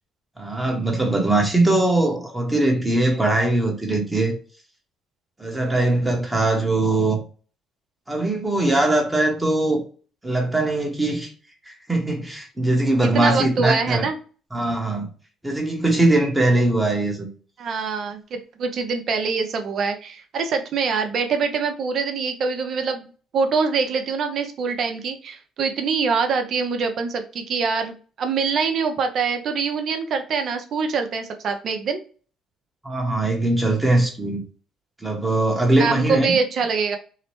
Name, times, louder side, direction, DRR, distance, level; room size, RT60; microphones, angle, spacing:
voice 1, 0.4-4.4 5.4-7.2 8.1-9.8 10.2-11.3 11.7-14.1 14.5-15.1 15.4-17.3 32.8-34.4 35.0-36.4, right 2 dB, 15° right, 0.9 m, -21 dB
voice 2, 13.0-14.2 17.6-32.0 35.7-37.0, right 5 dB, 60° right, 0.5 m, -24 dB
2.8 x 2.0 x 3.0 m
supercardioid pair, 80°, 0 cm